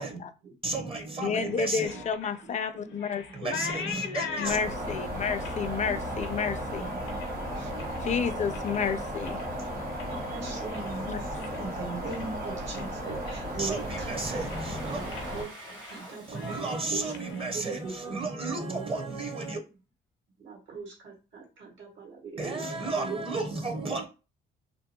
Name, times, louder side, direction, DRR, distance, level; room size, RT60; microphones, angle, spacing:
voice 1, 0.1-0.5 2.4-4.1 4.6-4.7 5.4-5.8 6.5-8.1 9.8-18.3 18.6-18.9 20.4-23.2, right 4 dB, 70° right, 1.4 m, -42 dB
voice 2, 0.6-2.0 3.3-4.6 13.6-15.0 16.3-19.6 22.4-24.1, right 3 dB, 30° right, 0.7 m, -33 dB
voice 3, 1.2-3.5 4.4-6.9 8.0-9.4 11.1-11.2, left 6 dB, 35° left, 0.4 m, -30 dB
sound 1, 1.4-8.1 8.4-8.9 9.2-11.7 12.0-12.4 12.7-12.9 13.3-14.1 14.4-14.7 15.1-15.3 15.6-16.0 16.3-18.1, left 6 dB, 80° left, 0.6 m, -41 dB
sound 2, 4.4-15.4, equal, 45° right, 1.1 m, -35 dB
Domestic sounds home sounds, 13.4-18.2, right 1 dB, 85° right, 1.1 m, -49 dB
2.6 x 2.2 x 2.7 m
cardioid pair, 90°, 20 cm